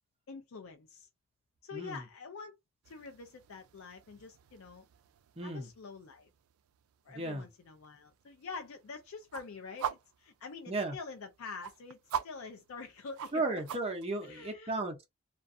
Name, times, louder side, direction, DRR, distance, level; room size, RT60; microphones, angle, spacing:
voice 1, 0.3-1.1 1.6-2.6 2.9-4.9 5.4-6.3 7.0-13.6 14.2-14.8, left 4 dB, 75° left, 0.4 m, -46 dB
voice 2, 1.7-2.0 5.4-5.7 7.1-7.5 10.7-11.0 13.3-15.1, right 2 dB, 25° right, 0.6 m, -35 dB
sound 1, 2.8-14.1, right 8 dB, 80° right, 0.3 m, -45 dB
2.4 x 2.2 x 2.5 m
head